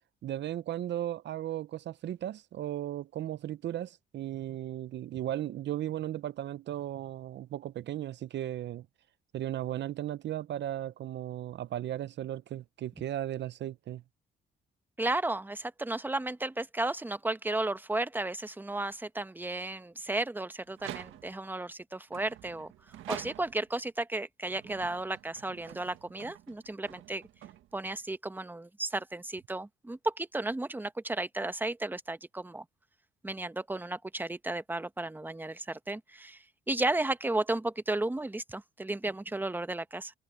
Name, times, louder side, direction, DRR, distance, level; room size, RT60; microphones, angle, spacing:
voice 1, 0.2-8.9 9.3-14.0, right 12 dB, 65° right, 0.6 m, -36 dB
voice 2, 15.0-22.7 23.1-27.2 27.7-32.6 33.2-40.1, right 2 dB, 10° right, 1.0 m, -34 dB
sound 1, 20.7-21.5 22.1-23.8 24.5-28.0, right 13 dB, 85° right, 1.6 m, -47 dB
cardioid pair, 90°, 20 cm